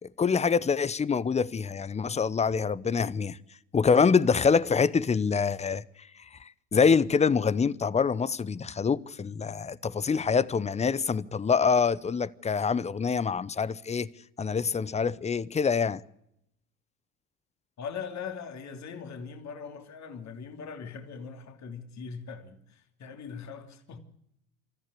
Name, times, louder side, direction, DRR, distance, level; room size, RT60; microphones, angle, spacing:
voice 1, 0.0-3.4 3.7-5.8 6.7-14.1 14.4-16.0, left 5 dB, 15° left, 0.7 m, -25 dB
voice 2, 17.8-24.0, left 6 dB, 40° left, 3.0 m, -41 dB
25.5 x 14.0 x 8.3 m
hypercardioid pair, 80°, 44 cm